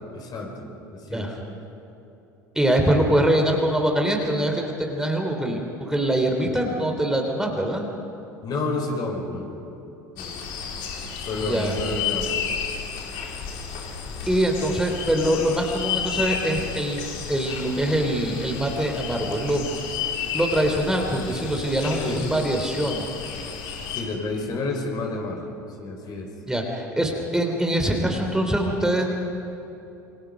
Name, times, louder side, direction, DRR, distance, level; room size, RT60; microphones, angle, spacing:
voice 1, 0.1-1.3 8.4-9.7 10.2-10.3 11.2-12.4 22.0-22.2 24.0-25.5 25.8-26.3, left 2 dB, 40° left, 2 dB, 5.3 m, -30 dB
voice 2, 2.6-7.9 11.4-11.7 14.3-19.7 20.3-23.1 26.5-29.1, right 1 dB, 5° right, 2 dB, 3.6 m, -23 dB
sound 1, 10.2-24.0, left 7 dB, 55° left, 3.9 m, -32 dB
28.0 x 25.5 x 5.4 m, 3.0 s
figure-of-eight pair, 70°, 10 cm